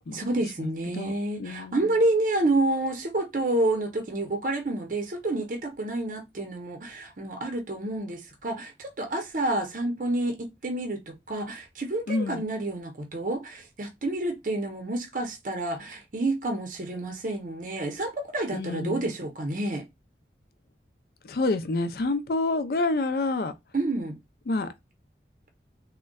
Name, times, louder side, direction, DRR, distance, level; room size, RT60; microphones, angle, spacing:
voice 1, 0.1-19.8 23.7-24.2, right 2 dB, 45° right, 0.6 m, -29 dB
voice 2, 0.9-2.0 12.1-12.4 18.5-19.1 21.2-23.5 24.5-24.7, left 2 dB, 55° left, 0.4 m, -28 dB
3.7 x 2.1 x 2.2 m
head